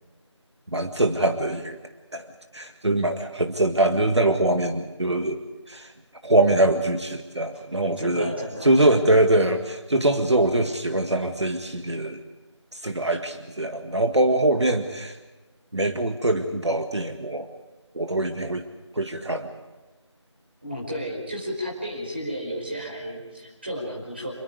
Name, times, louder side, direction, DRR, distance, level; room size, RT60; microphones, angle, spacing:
voice 1, 0.7-1.8 2.1-2.3 2.5-5.4 5.7-5.9 6.2-8.3 8.6-12.2 12.7-15.2 15.7-17.5 17.9-18.7 18.9-19.5, right 1 dB, 65° right, 6 dB, 1.8 m, -23 dB
voice 2, 8.0-8.9 20.6-24.3, equal, 20° right, -3 dB, 5.0 m, -33 dB
27.5 x 22.0 x 5.1 m, 1.2 s
figure-of-eight pair, 180°, 15 cm